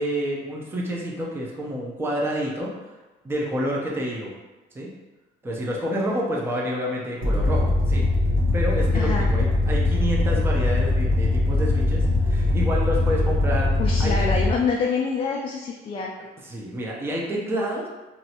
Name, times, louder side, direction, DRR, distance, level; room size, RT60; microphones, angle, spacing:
voice 1, 0.0-2.7 3.2-4.3 4.7-4.9 5.4-8.1 8.5-13.7 14.0-14.3 16.4-17.9, equal, 15° right, -3 dB, 0.6 m, -28 dB
sound 1, 7.2-14.5, left 2 dB, 55° right, 1.0 m, -21 dB
voice 2, 8.9-9.3 13.8-16.1, left 5 dB, 35° left, -1 dB, 0.3 m, -26 dB
3.1 x 2.6 x 2.8 m, 1.2 s
cardioid pair, 110°, 17 cm